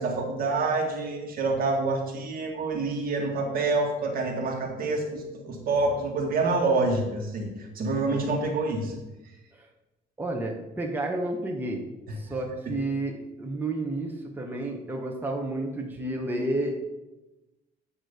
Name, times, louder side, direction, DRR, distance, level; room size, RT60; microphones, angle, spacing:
voice 1, 0.0-8.9 12.6-12.7, right 3 dB, 60° right, 2 dB, 1.7 m, -27 dB
voice 2, 10.2-11.8 12.2-13.1 13.4-16.8, right 2 dB, 10° right, 0 dB, 1.1 m, -31 dB
9.0 x 3.1 x 6.5 m, 1.0 s
cardioid pair, 110°, 17 cm